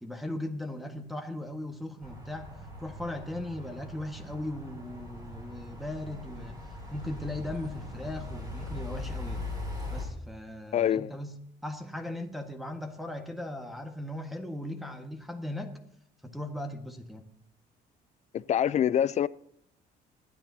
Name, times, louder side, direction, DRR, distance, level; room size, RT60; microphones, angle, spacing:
voice 1, 0.0-6.6 6.9-9.4 9.9-15.8 16.2-17.2, left 1 dB, ahead, 1.5 m, -38 dB
sound 1, 2.0-10.0, left 1 dB, 20° right, 6.8 m, -40 dB
voice 2, 10.7-11.1 18.3-19.3, left 10 dB, 40° left, 0.5 m, -25 dB
27.0 x 10.5 x 2.8 m
cardioid pair, 110°, 17 cm